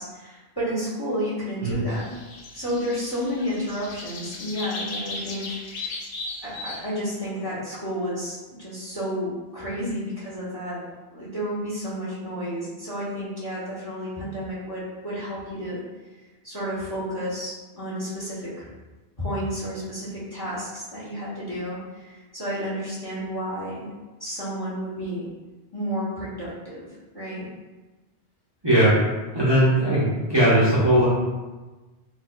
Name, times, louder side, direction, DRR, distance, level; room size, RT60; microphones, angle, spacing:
voice 1, 0.0-2.2 2.5-6.0 6.4-10.8 11.1-15.8 16.4-18.7 19.2-23.9 24.2-25.3 25.7-27.5, equal, 25° left, -8 dB, 0.9 m, -31 dB
sound 1, 1.9-6.8, left 2 dB, 75° left, 0.9 m, -37 dB
voice 2, 28.6-28.9 29.3-31.1, right 1 dB, 25° right, -10 dB, 0.7 m, -19 dB
4.5 x 2.3 x 2.2 m, 1.2 s
omnidirectional pair, 1.1 m